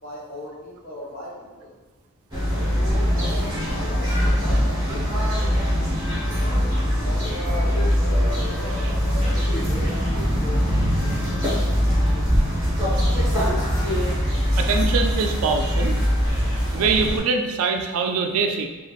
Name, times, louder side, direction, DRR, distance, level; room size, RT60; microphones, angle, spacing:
voice 1, 0.0-1.7 2.3-5.4 6.2-12.0, equal, 40° left, -7 dB, 0.8 m, -39 dB
sound 1, 2.3-17.2, equal, 20° right, 1.0 m, -22 dB
voice 2, 14.6-16.0 16.7-18.7, right 4 dB, 75° right, 4 dB, 0.3 m, -23 dB
3.2 x 2.4 x 2.3 m, 1.2 s
head